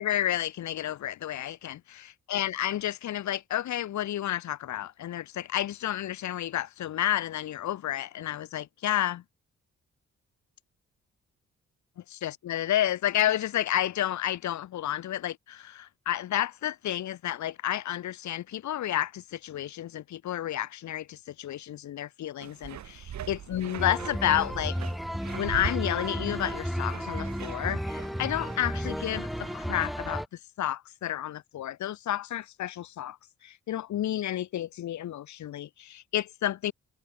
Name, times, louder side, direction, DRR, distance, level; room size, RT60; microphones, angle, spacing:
voice 1, 0.0-9.2 12.1-24.8 25.4-30.2 30.6-33.2 33.4-36.7, left 12 dB, 75° left, 1.5 m, -31 dB
sound 1, 22.4-29.7, right 10 dB, 70° right, 4.1 m, -43 dB
sound 2, 23.8-30.3, equal, ahead, 1.0 m, -33 dB
open air
supercardioid pair, 55°, 29 cm